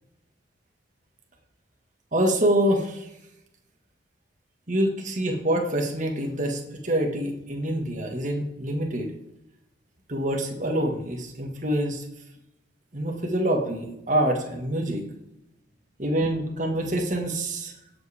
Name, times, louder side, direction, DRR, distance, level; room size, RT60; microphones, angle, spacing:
voice 1, 2.1-3.1 4.7-9.1 10.1-12.0 12.9-15.0 16.0-17.7, right 1 dB, 40° right, 2 dB, 1.8 m, -26 dB
17.0 x 7.9 x 3.6 m, 0.86 s
head